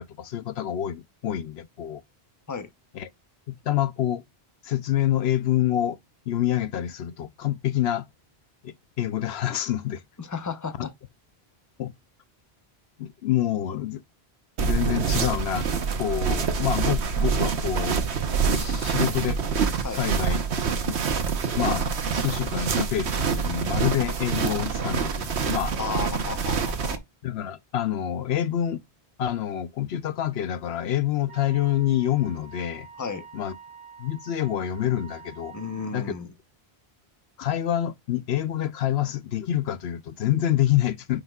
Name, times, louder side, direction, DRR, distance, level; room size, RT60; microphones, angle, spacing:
voice 1, 0.0-2.0 2.9-3.1 3.5-4.2 4.6-6.0 6.3-8.1 8.6-10.0 10.8-10.9 11.8-11.9 13.0-14.0 14.6-15.7 16.0-18.0 18.5-19.4 20.0-20.4 20.9-21.0 21.6-25.7 27.2-28.8 29.2-32.9 33.3-33.5 34.0-35.5 35.9-36.1 37.4-41.2, left 11 dB, 75° left, 0.8 m, -27 dB
voice 2, 10.2-10.9 19.8-20.0 25.7-27.0 33.0-33.3 35.5-36.3, left 5 dB, 20° left, 0.8 m, -33 dB
sound 1, 14.6-27.0, right 6 dB, 85° right, 1.3 m, -26 dB
Wind instrument woodwind instrument, 31.3-36.1, right 6 dB, 25° right, 2.5 m, -47 dB
9.4 x 4.9 x 2.3 m
omnidirectional pair, 1.1 m